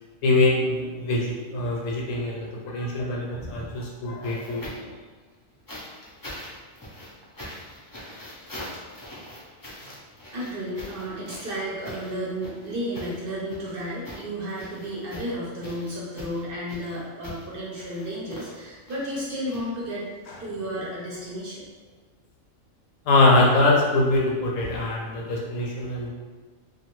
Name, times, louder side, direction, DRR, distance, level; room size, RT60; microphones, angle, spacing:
voice 1, 0.2-4.9 20.3-20.4 23.1-26.1, left 2 dB, 80° left, -2 dB, 1.0 m, -23 dB
sound 1, 3.3-5.0 5.7-20.2 21.3-21.4, left 1 dB, 30° left, 0.3 m, -42 dB
voice 2, 10.3-20.0 20.4-21.6, equal, 55° right, -6 dB, 0.7 m, -32 dB
2.5 x 2.3 x 3.0 m, 1.4 s
omnidirectional pair, 1.3 m